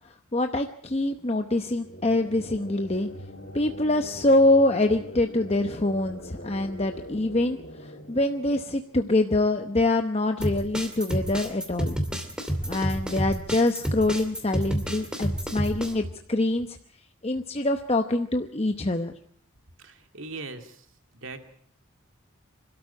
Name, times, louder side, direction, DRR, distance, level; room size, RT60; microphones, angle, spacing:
voice 1, 0.3-3.1 3.5-12.0 12.7-16.8 17.2-19.2, left 2 dB, 30° left, 6 dB, 0.9 m, -25 dB
sound 1, 1.6-9.2, left 1 dB, 50° left, 3.7 m, -43 dB
sound 2, 10.4-15.9, equal, 5° right, 2.6 m, -29 dB
voice 2, 19.8-20.9 21.2-21.4, right 3 dB, 60° right, 6 dB, 2.5 m, -39 dB
26.0 x 13.0 x 8.7 m, 0.62 s
head